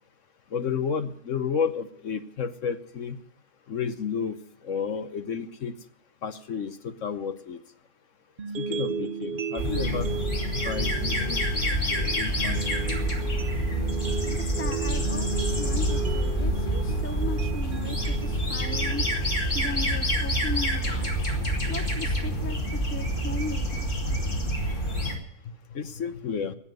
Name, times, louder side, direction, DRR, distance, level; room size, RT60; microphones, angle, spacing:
voice 1, 0.5-3.2 3.7-4.4 4.6-5.7 6.2-7.6 8.6-10.1 10.6-11.4 11.9-12.9 25.7-26.5, left 6 dB, 55° left, 11 dB, 1.2 m, -31 dB
sound 1, 8.4-20.4, right 5 dB, 45° right, 0.8 m, -35 dB
sound 2, 9.6-25.2, equal, 30° left, 2.7 m, -27 dB
voice 2, 14.3-19.0 19.5-21.3 21.7-24.2, left 2 dB, 15° left, 11 dB, 0.6 m, -37 dB
18.0 x 7.2 x 9.3 m, 0.73 s
omnidirectional pair, 1.7 m